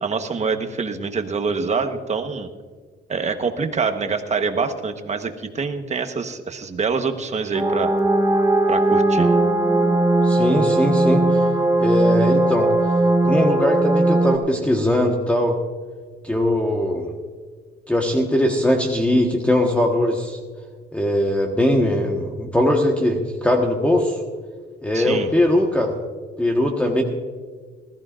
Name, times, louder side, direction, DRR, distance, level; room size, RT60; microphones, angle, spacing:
voice 1, 0.0-2.5 3.1-7.9 8.7-9.3 24.9-25.3, right 5 dB, 40° right, 7 dB, 1.2 m, -25 dB
sound 1, 7.5-14.4, right 2 dB, 15° right, 1.3 m, -18 dB
voice 2, 10.2-11.4 11.8-12.7 13.2-15.6 16.2-17.1 17.9-20.4 20.9-24.2 24.8-25.9 26.4-27.0, left 1 dB, 5° left, 1 dB, 1.3 m, -20 dB
20.0 x 14.0 x 2.5 m, 1.5 s
cardioid pair, 100°, 19 cm